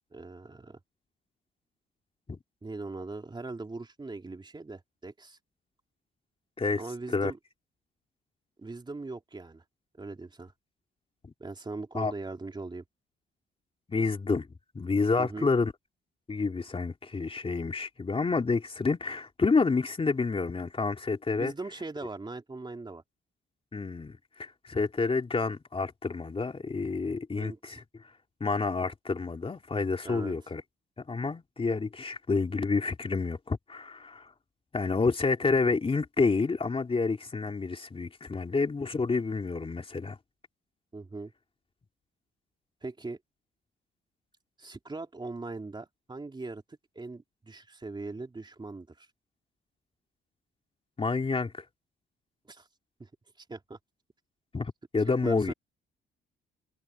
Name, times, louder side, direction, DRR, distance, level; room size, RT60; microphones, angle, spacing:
voice 1, 0.1-0.8 2.6-5.4 6.7-7.4 8.6-9.6 10.0-10.5 11.4-12.8 15.2-15.5 21.3-23.0 27.3-27.8 30.0-30.4 40.9-41.3 42.8-43.2 44.6-49.1 52.5-52.7 53.0-53.1 53.4-53.8 55.2-55.5, right 3 dB, 20° right, 3.1 m, -40 dB
voice 2, 13.9-14.5 14.7-15.7 16.3-21.5 23.7-27.8 28.4-30.6 31.1-34.3 34.7-40.2 51.0-51.6 54.5-55.5, left 4 dB, 30° left, 3.0 m, -29 dB
cardioid pair, 90°, 20 cm